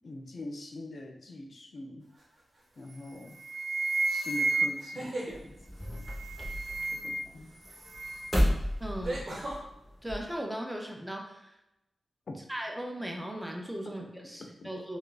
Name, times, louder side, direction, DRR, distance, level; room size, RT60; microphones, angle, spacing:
voice 1, 0.0-2.1 2.8-3.4 4.1-5.6 6.9-7.5 12.3-12.4 14.2-14.7, left 1 dB, 60° left, 2 dB, 0.4 m, -43 dB
sound 1, 2.2-2.6 4.7-5.4 7.7-7.8 9.0-9.6, right 1 dB, 50° right, 1.0 m, -36 dB
sound 2, 2.9-3.1 3.4-5.1 5.9-7.4 7.6-8.4, right 3 dB, 75° right, 0.8 m, -32 dB
sound 3, 5.3-10.3, equal, 10° left, 1.0 m, -33 dB
voice 2, 8.8-9.2 10.0-11.5 12.5-15.0, equal, 10° right, 1 dB, 0.6 m, -37 dB
3.6 x 2.4 x 2.4 m, 0.88 s
cardioid pair, 55°, 0 cm